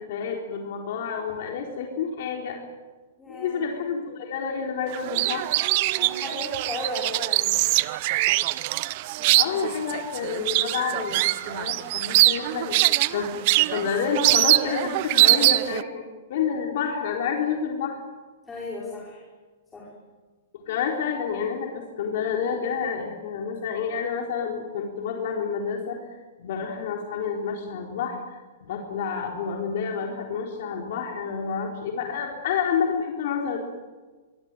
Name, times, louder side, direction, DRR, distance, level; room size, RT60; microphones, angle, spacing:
voice 1, 0.0-2.6 3.3-5.5 9.4-13.3 13.7-18.0 20.5-33.6, left 6 dB, 50° left, 1 dB, 4.1 m, -29 dB
voice 2, 3.2-3.7 6.0-7.6 9.2-9.5 18.5-19.2 19.7-19.9, left 2 dB, 10° left, -4 dB, 5.1 m, -36 dB
sound 1, 4.9-15.8, right 18 dB, 35° right, 0.8 m, -23 dB
25.0 x 23.5 x 9.2 m, 1.3 s
hypercardioid pair, 165°, 0 cm